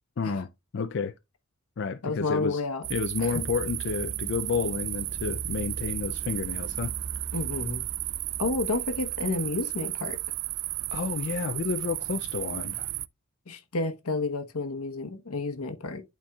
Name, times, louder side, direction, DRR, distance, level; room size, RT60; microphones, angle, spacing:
voice 1, 0.2-0.5 0.7-1.1 1.8-2.6 2.9-6.9 10.9-12.9, left 5 dB, 55° left, 0.4 m, -30 dB
voice 2, 2.0-2.9 3.2-3.4 7.3-7.9 8.4-10.2 13.5-16.0, left 3 dB, 85° left, 1.1 m, -30 dB
sound 1, 2.8-13.1, right 18 dB, 80° right, 0.3 m, -34 dB
sound 2, 3.2-10.4, right 3 dB, 25° right, 0.8 m, -42 dB
11.5 x 4.5 x 2.3 m
head